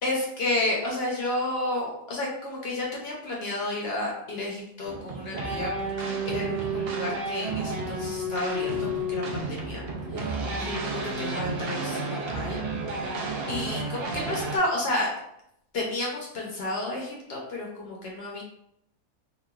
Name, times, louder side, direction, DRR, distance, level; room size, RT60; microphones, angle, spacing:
voice 1, 0.0-5.7 6.2-9.8 10.1-10.9 11.2-12.6 13.5-15.1 15.7-18.4, left 1 dB, 60° left, -2 dB, 0.8 m, -31 dB
sound 1, 4.8-14.6, right 2 dB, 60° right, 0.6 m, -31 dB
3.1 x 2.3 x 2.2 m, 0.75 s
omnidirectional pair, 1.4 m